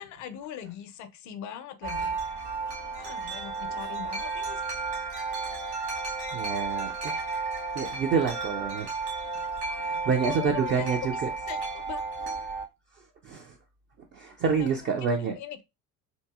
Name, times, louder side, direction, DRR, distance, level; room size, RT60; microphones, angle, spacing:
voice 1, 0.0-2.2 2.9-4.7 9.4-9.5 10.2-11.0 11.5-12.0 14.6-15.6, left 10 dB, 40° left, 0.5 m, -41 dB
Wind chime, 1.8-12.6, right 4 dB, 65° right, 1.6 m, -33 dB
voice 2, 6.3-7.2 7.7-8.9 9.8-11.3 13.2-13.6 14.1-15.4, right 5 dB, 25° right, 0.4 m, -28 dB
2.8 x 2.6 x 2.3 m
figure-of-eight pair, 55°, 47 cm